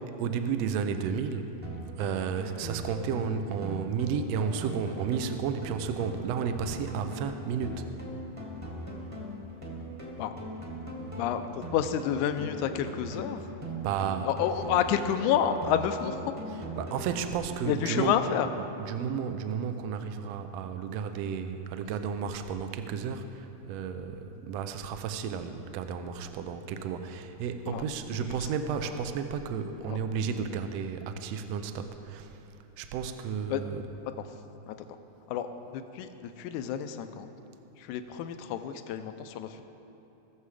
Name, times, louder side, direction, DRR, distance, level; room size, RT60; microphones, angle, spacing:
voice 1, 0.2-1.5 1.8-7.9 13.8-14.3 16.8-18.1 18.6-32.4 32.8-33.8, right 7 dB, 80° right, 8 dB, 1.5 m, -32 dB
sound 1, 1.6-17.6, equal, 20° right, 0.8 m, -40 dB
voice 2, 11.2-13.4 14.2-16.4 17.6-18.5 27.7-27.8 28.1-28.3 29.9-30.0 33.5-33.6 34.2-34.3 34.7-34.8 35.3-35.5 35.7-37.3 37.8-39.6, left 9 dB, 80° left, 9 dB, 2.0 m, -29 dB
19.0 x 7.1 x 4.9 m, 2.9 s
omnidirectional pair, 3.7 m